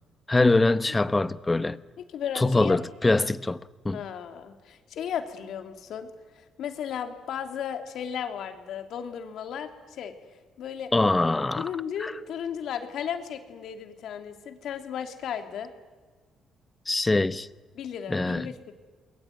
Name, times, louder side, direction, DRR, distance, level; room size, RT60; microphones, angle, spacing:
voice 1, 0.3-1.8 2.3-4.0 10.9-11.7 12.0-12.1 16.9-17.5 18.1-18.5, left 2 dB, 20° left, 1.0 m, -23 dB
voice 2, 2.0-2.8 3.9-6.1 6.4-10.1 10.6-10.9 11.6-15.7 17.7-18.7, left 8 dB, 75° left, 3.0 m, -35 dB
28.0 x 22.0 x 9.4 m
cardioid pair, 90°, 0 cm